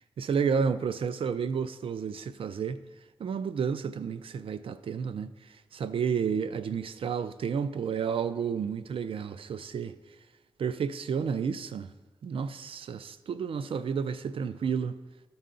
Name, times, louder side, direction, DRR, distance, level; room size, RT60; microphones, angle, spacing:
voice 1, 0.2-2.8 3.2-10.0 10.6-11.9 12.2-15.0, right 6 dB, 80° right, 0.4 m, -31 dB
13.0 x 5.6 x 3.8 m
cardioid pair, 65°, 9 cm